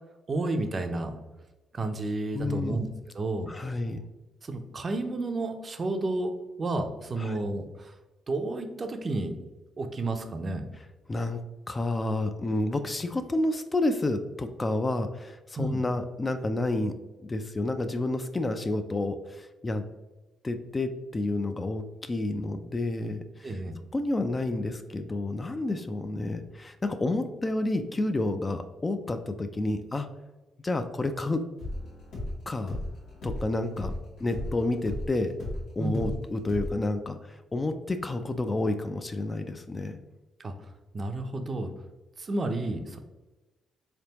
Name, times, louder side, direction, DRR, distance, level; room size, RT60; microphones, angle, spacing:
voice 1, 0.3-1.1 1.7-2.9 3.1-3.5 4.4-6.3 6.6-7.9 8.3-9.3 9.8-10.7 15.6-15.9 23.4-23.8 35.8-36.1 40.4-40.7 40.9-41.7 42.2-43.0, right 2 dB, 35° right, 6 dB, 0.5 m, -31 dB
voice 2, 2.3-2.8 3.5-4.0 7.2-7.4 11.1-11.4 11.7-16.9 17.2-19.9 20.4-23.6 23.9-30.1 30.6-31.5 32.5-32.8 33.2-33.9 34.2-35.3 35.8-40.0, left 2 dB, 25° left, 8 dB, 0.3 m, -30 dB
sound 1, 31.6-36.2 36.5-36.7, left 1 dB, 75° left, 1.3 m, -35 dB
3.7 x 3.4 x 2.9 m, 1.1 s
cardioid pair, 90°, 0 cm